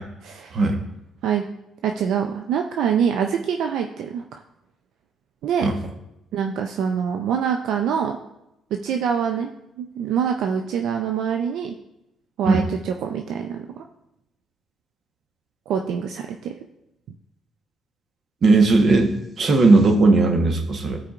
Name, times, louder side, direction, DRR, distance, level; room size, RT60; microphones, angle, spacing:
voice 1, 0.2-0.6 1.2-1.4 1.8-4.4 5.4-5.7 6.3-8.2 8.8-9.5 9.8-11.8 12.4-13.8 15.7-16.5, right 7 dB, 80° right, 4 dB, 0.4 m, -25 dB
voice 2, 18.4-21.0, right 3 dB, 50° right, 4 dB, 1.1 m, -17 dB
13.0 x 4.8 x 2.5 m, 0.86 s
cardioid pair, 90°, 0 cm